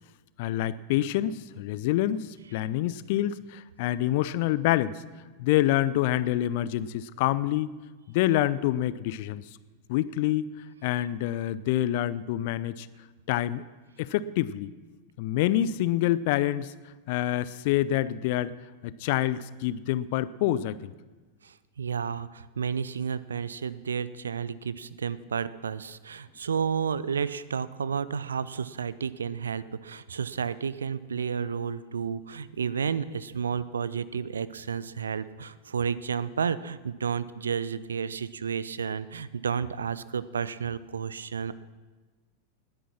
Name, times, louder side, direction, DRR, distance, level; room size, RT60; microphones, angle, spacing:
voice 1, 0.4-5.0 5.4-7.7 8.1-9.4 9.9-10.5 10.8-12.9 13.3-13.6 14.0-14.7 15.2-16.7 17.1-18.5 18.8-20.9, left 13 dB, 50° left, 17 dB, 0.5 m, -27 dB
voice 2, 21.4-41.5, right 6 dB, 70° right, 17 dB, 0.5 m, -31 dB
19.5 x 10.0 x 6.0 m, 1.3 s
figure-of-eight pair, 90°, 0 cm